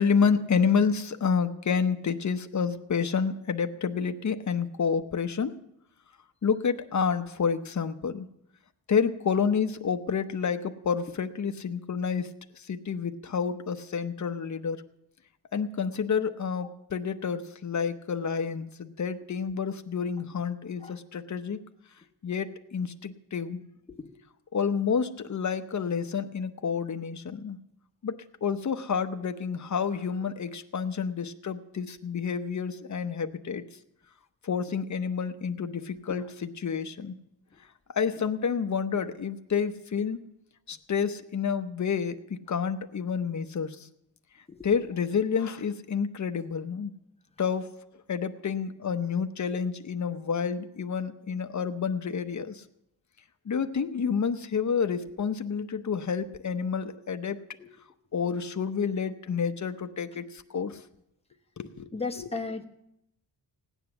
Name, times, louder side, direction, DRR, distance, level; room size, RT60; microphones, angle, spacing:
voice 1, 0.0-5.5 6.4-8.3 8.9-14.8 15.5-21.6 22.2-23.6 24.5-27.6 28.0-28.2 28.4-33.7 34.4-37.2 37.9-40.2 40.7-43.8 44.6-46.9 47.4-47.7 48.1-52.6 53.5-57.4 58.1-60.8 61.6-62.3, left 6 dB, 40° left, 8 dB, 0.8 m, -29 dB
voice 2, 61.9-62.7, left 4 dB, 15° left, 4 dB, 1.0 m, -35 dB
17.0 x 9.7 x 7.0 m, 0.80 s
wide cardioid pair, 155°, 46 cm